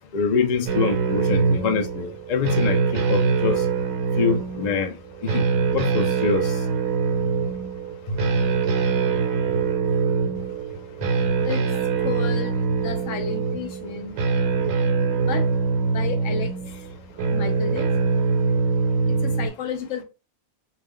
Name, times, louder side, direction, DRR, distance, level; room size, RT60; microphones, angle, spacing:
voice 1, 0.1-3.6 4.2-4.9 5.2-5.5 5.7-6.5 8.1-8.4 9.5-9.6, left 6 dB, 85° left, 0.3 m, -25 dB
sound 1, 0.7-19.5, right 5 dB, 75° right, 1.0 m, -23 dB
voice 2, 11.3-11.6 12.0-14.2 15.1-15.5 15.8-16.5 17.3-18.2 19.1-20.0, left 6 dB, 70° left, 0.9 m, -32 dB
2.4 x 2.2 x 3.6 m
omnidirectional pair, 1.4 m